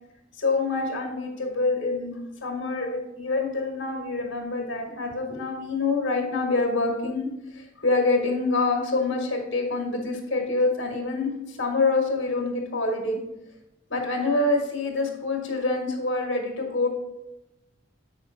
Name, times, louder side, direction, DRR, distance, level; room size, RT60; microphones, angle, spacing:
voice 1, 0.4-7.3 7.5-13.3 13.9-16.9, left 3 dB, 65° left, 1 dB, 1.7 m, -26 dB
8.1 x 5.1 x 3.8 m, 0.91 s
head